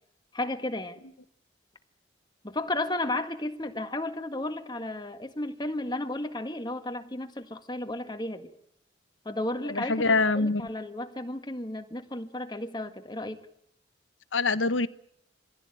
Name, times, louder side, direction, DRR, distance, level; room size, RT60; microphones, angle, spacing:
voice 1, 0.3-1.0 2.4-8.5 9.2-13.5, left 1 dB, 20° left, 7 dB, 1.7 m, -33 dB
voice 2, 9.7-10.7 14.3-14.9, left 3 dB, 85° left, 13 dB, 1.1 m, -24 dB
23.5 x 16.0 x 9.1 m, 0.70 s
head